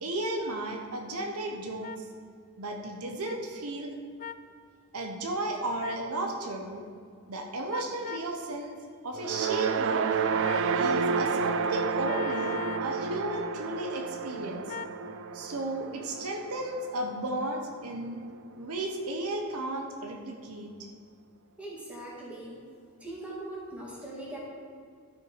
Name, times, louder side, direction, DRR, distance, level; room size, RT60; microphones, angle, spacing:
voice 1, 0.0-2.1 2.6-3.9 4.9-6.8 7.3-8.8 9.0-10.2 10.7-14.8 15.3-18.2 18.6-20.9, right 2 dB, 80° right, 2 dB, 1.0 m, -34 dB
sound 1, 1.8-2.0 3.2-3.4 4.2-4.4 5.8-6.1 7.7-8.3 10.4-10.7 12.0-12.9 14.7-15.0, left 8 dB, 35° left, 0.3 m, -39 dB
sound 2, 9.2-17.5, right 5 dB, 60° right, 0.4 m, -30 dB
voice 2, 21.6-22.6 23.0-24.4, right 1 dB, 5° right, -6 dB, 2.3 m, -40 dB
12.5 x 5.6 x 5.0 m, 2.2 s
head